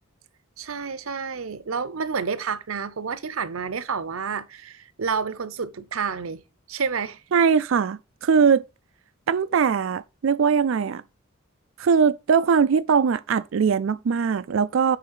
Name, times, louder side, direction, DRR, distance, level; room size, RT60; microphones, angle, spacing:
voice 1, 0.6-6.4 6.7-7.2, right 5 dB, 90° right, 0.7 m, -29 dB
voice 2, 7.3-8.6 9.3-11.0 11.8-15.0, right 6 dB, 65° right, 0.4 m, -21 dB
9.2 x 3.3 x 5.4 m
head